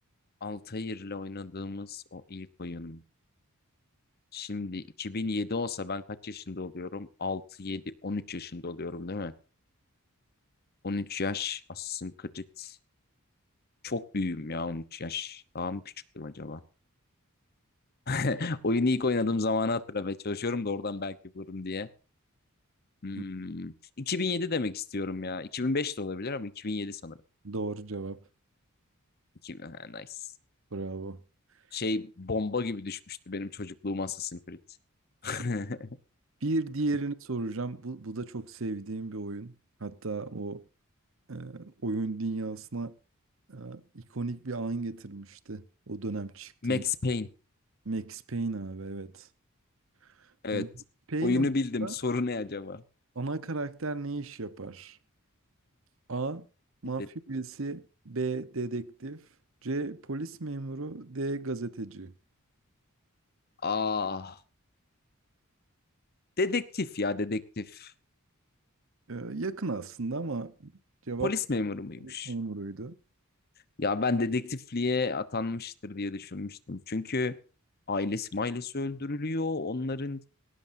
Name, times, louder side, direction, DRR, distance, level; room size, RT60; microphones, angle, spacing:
voice 1, 0.4-3.0 4.3-9.3 10.8-12.8 13.8-15.8 16.1-16.6 18.1-21.9 23.0-27.2 29.4-30.2 31.7-34.6 35.2-35.9 46.6-47.3 50.4-50.7 51.2-52.8 57.0-57.1 63.6-64.4 66.4-67.9 71.2-72.3 73.8-77.4 77.9-80.3, left 3 dB, 45° left, 0.9 m, -32 dB
voice 2, 27.4-28.2 30.7-31.2 36.4-39.5 39.8-40.6 41.3-42.9 43.5-46.8 47.8-49.3 50.5-50.7 51.1-51.5 51.8-51.9 53.1-55.0 56.1-56.4 56.8-59.3 59.6-62.1 69.1-70.7 71.1-71.3 72.0-72.9, right 3 dB, 60° right, 1.0 m, -34 dB
19.0 x 18.0 x 2.7 m
head